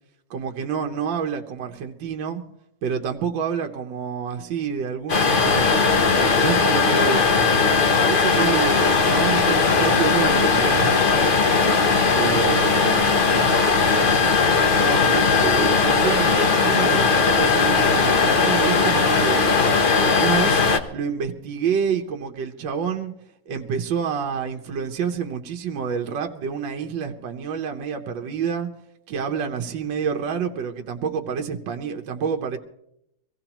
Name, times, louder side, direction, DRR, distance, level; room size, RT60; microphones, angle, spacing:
voice 1, 0.3-2.4 2.8-5.7 6.3-7.3 7.8-11.0 12.1-13.3 14.7-19.4 20.2-20.6 20.9-23.1 23.5-28.7 29.1-32.6, right 7 dB, 75° right, 4 dB, 1.7 m, -28 dB
sound 1, 5.1-20.8, left 4 dB, 40° left, 0.8 m, -18 dB
24.5 x 16.0 x 3.0 m, 0.78 s
omnidirectional pair, 2.0 m